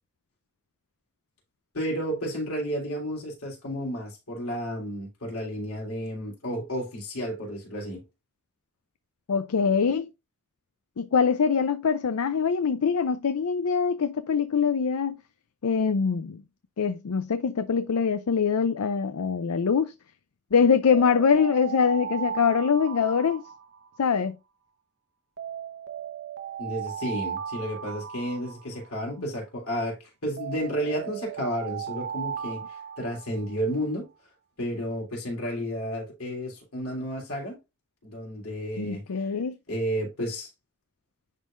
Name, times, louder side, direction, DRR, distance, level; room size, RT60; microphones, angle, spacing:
voice 1, 1.7-8.0 26.6-32.6 33.0-34.1 34.6-37.6 38.0-39.2 39.7-40.5, equal, 70° left, 3.6 m, -32 dB
voice 2, 9.3-10.1 11.0-15.2 15.6-16.4 16.8-19.9 20.5-23.4 24.0-24.3 38.8-39.5, left 6 dB, 85° left, 0.5 m, -23 dB
Alarm, 20.9-24.2 25.4-29.2 30.4-33.6, right 8 dB, 55° right, 0.9 m, -37 dB
10.5 x 3.7 x 2.5 m
head